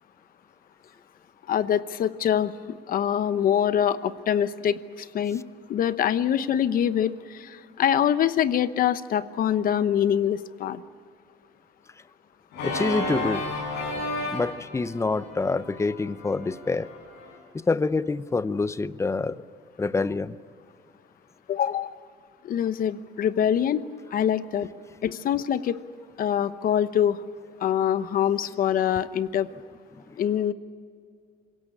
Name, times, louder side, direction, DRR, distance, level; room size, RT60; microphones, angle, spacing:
voice 1, 1.5-5.4 5.7-10.8 21.5-22.0 22.4-23.8 24.1-24.7 25.0-25.8 26.2-27.2 27.6-29.5 30.2-30.5, left 9 dB, 55° left, 1.0 m, -24 dB
Organ, 12.5-17.4, left 2 dB, 85° left, 7.3 m, -33 dB
voice 2, 12.6-13.4 14.3-16.9 17.7-19.4 19.8-20.4, left 3 dB, 15° left, 0.7 m, -26 dB
26.5 x 17.0 x 9.8 m
cardioid pair, 110°, 17 cm